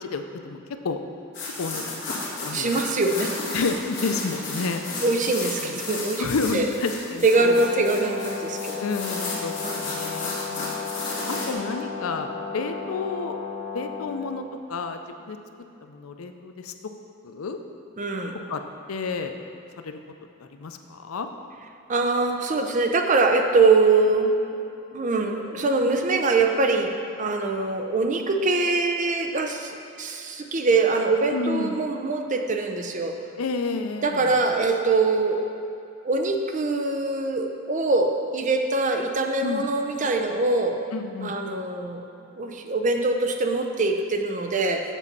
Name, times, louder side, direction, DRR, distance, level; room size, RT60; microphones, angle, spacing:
voice 1, 0.0-0.6 0.8-1.0 1.6-2.0 2.4-2.7 3.5-4.8 5.6-5.8 6.2-7.6 8.8-10.8 11.3-13.4 13.7-14.4 14.7-15.0 15.3-15.4 15.9-16.7 17.2-17.6 18.5-18.6 18.9-19.3 19.8-20.0 20.4-21.3 31.3-31.8 33.4-34.4 39.4-39.6 40.9-41.3, left 4 dB, 85° left, 6 dB, 0.5 m, -30 dB
sound 1, 1.3-11.5, left 2 dB, 55° left, 1.8 m, -34 dB
voice 2, 2.5-3.3 5.0-6.2 6.5-6.7 7.2-8.8 9.6-9.8 11.4-11.5 18.0-18.4 21.9-24.3 24.9-26.9 27.2-33.1 34.0-35.4 36.0-40.8 41.2-42.0 42.4-44.8, right 3 dB, 35° right, 4 dB, 0.5 m, -23 dB
Brass instrument, 7.3-14.3, left 5 dB, 80° right, 0.9 m, -34 dB
7.2 x 4.1 x 6.7 m, 2.7 s
head